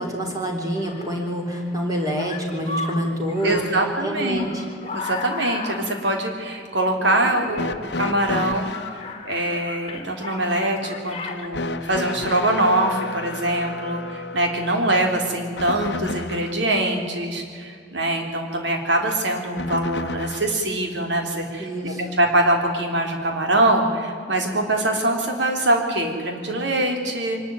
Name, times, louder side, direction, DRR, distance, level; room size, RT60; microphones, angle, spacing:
voice 1, 0.0-3.7 4.0-4.6 21.6-22.1, equal, 20° right, 1 dB, 3.9 m, -27 dB
sound 1, 0.7-11.5, left 3 dB, 30° left, 1.8 m, -36 dB
voice 2, 3.4-4.5 4.9-27.4, right 1 dB, 75° right, 3 dB, 3.5 m, -23 dB
sound 2, 7.5-9.0 11.5-16.6 19.6-20.6 21.8-21.9 23.0-23.1, left 2 dB, 65° left, 1.0 m, -32 dB
24.0 x 12.5 x 9.3 m, 2.3 s
head